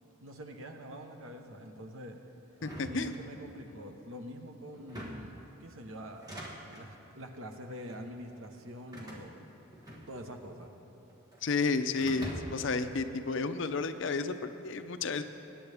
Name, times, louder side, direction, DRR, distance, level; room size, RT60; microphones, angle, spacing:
voice 1, 0.2-2.2 2.9-6.4 6.7-9.5 10.1-10.7, equal, 75° right, 4 dB, 1.1 m, -45 dB
voice 2, 2.6-3.1 11.4-15.2, left 4 dB, 60° left, 9 dB, 0.5 m, -32 dB
sound 1, 2.6-3.7 4.7-5.4 6.1-6.9 7.7-8.1 8.9-10.4 10.7-11.5 12.0-12.7, equal, 20° right, 1.4 m, -45 dB
21.0 x 9.7 x 3.5 m, 3.0 s
head